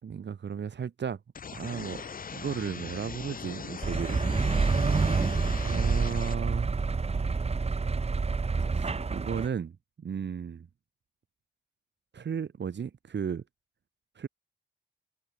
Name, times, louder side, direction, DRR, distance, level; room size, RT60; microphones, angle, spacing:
voice 1, 0.0-1.2 1.5-2.0 2.3-4.2 5.6-7.0 8.7-10.7 12.1-13.4 14.2-14.3, right 7 dB, 90° right, 6.0 m, -34 dB
sound 1, 1.3-6.3, left 6 dB, 50° left, 1.6 m, -40 dB
sound 2, 3.8-9.5, right 4 dB, 35° right, 2.1 m, -28 dB
wide cardioid pair, 155°, 18 cm